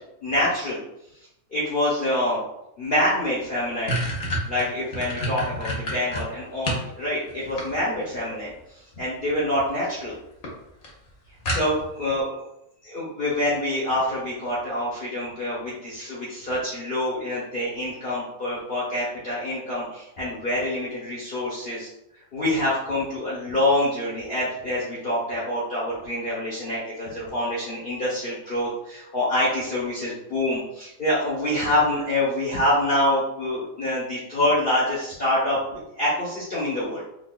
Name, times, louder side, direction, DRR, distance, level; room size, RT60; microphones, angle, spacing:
voice 1, 0.2-0.8 1.5-2.4 2.8-4.0 4.5-8.5 8.9-10.1 11.5-12.4 12.8-21.9 22.3-37.0, left 1 dB, 40° left, -8 dB, 1.0 m, -26 dB
sound 1, 3.0-3.1 3.4-6.9 7.3-8.2 9.3-9.7 10.0-10.1 10.4-10.5 10.8-10.9 11.5-12.0, equal, 70° left, 1.3 m, -29 dB
3.9 x 2.9 x 2.3 m, 0.83 s
omnidirectional pair, 1.5 m